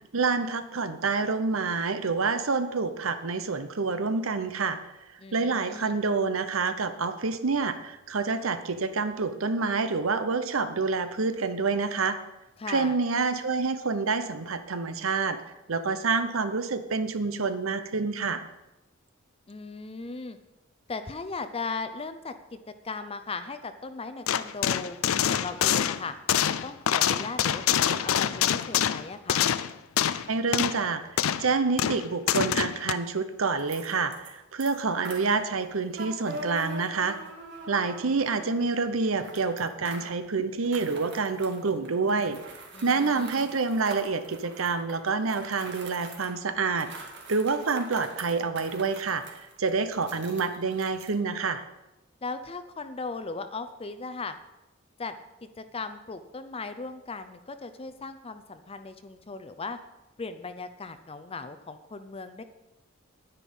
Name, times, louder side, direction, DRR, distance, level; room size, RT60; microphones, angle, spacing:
voice 1, 0.1-4.8 5.3-12.2 12.7-15.4 15.7-18.4 30.3-31.0 31.4-37.2 37.7-42.4 42.8-46.9 47.3-51.6, right 4 dB, 75° right, 11 dB, 0.9 m, -27 dB
voice 2, 5.2-6.0 12.6-13.0 19.5-20.4 20.9-22.6 22.8-25.0 25.3-26.1 26.6-29.5 42.7-43.5 52.2-54.3 55.0-59.8 60.2-62.4, left 4 dB, 30° left, 10 dB, 0.6 m, -38 dB
sound 1, 24.3-30.3 30.5-30.8 31.2-31.5 31.8-32.9, left 9 dB, 80° left, 0.5 m, -25 dB
sound 2, 33.6-34.3 34.6-38.6 39.2-40.2 40.6-46.4 46.7-51.1, right 2 dB, 60° right, 2.1 m, -43 dB
10.0 x 10.0 x 5.5 m, 0.98 s
head